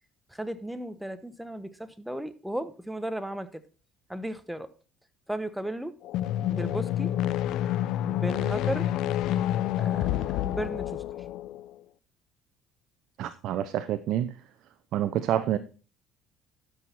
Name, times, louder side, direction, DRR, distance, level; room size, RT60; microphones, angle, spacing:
voice 1, 0.3-3.6 4.1-4.7 5.3-5.9 6.5-7.1 8.0-8.9 9.8-11.3, right 1 dB, 5° right, 12 dB, 1.0 m, -35 dB
sound 1, 6.0-11.7, left 12 dB, 70° left, 0.5 m, -28 dB
voice 2, 13.2-14.4 14.9-15.6, right 11 dB, 65° right, 11 dB, 0.6 m, -28 dB
12.5 x 6.3 x 4.4 m, 0.36 s
supercardioid pair, 90°, 0 cm